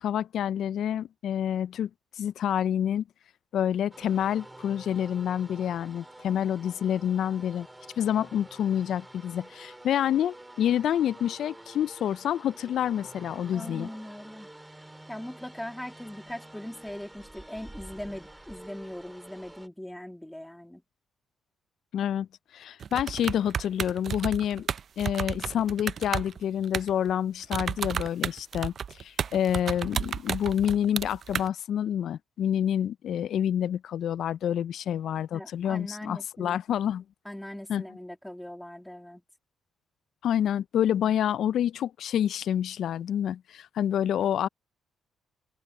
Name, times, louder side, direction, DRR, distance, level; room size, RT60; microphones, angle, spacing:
voice 1, 0.0-1.9 2.2-3.0 3.5-7.7 8.0-13.9 21.9-22.3 22.5-24.7 25.0-28.7 29.0-37.0 37.7-37.8 40.2-44.5, left 10 dB, 70° left, 0.4 m, -28 dB
sound 1, 3.9-19.7, right 1 dB, 10° right, 3.4 m, -48 dB
voice 2, 13.5-14.5 15.1-20.8 35.3-36.6 37.2-39.2, left 1 dB, 5° left, 2.6 m, -40 dB
sound 2, 22.8-27.1 27.4-31.5, right 7 dB, 55° right, 0.5 m, -32 dB
open air
cardioid pair, 90°, 0 cm